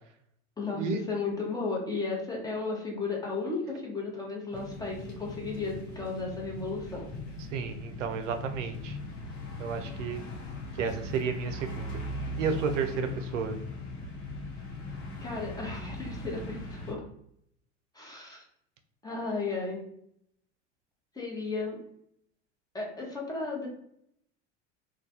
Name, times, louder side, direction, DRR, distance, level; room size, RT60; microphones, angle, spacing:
voice 1, 0.6-7.1 15.2-17.0 17.9-18.4 19.0-19.8 21.1-21.8 22.7-23.7, left 3 dB, 10° left, -2 dB, 0.8 m, -34 dB
sound 1, 4.5-16.9, left 1 dB, 50° left, 0.8 m, -39 dB
voice 2, 7.5-9.0 9.6-10.2 10.8-12.0 12.4-13.6, right 5 dB, 80° right, 7 dB, 0.5 m, -32 dB
2.3 x 2.2 x 2.7 m, 0.71 s
hypercardioid pair, 85°, 37 cm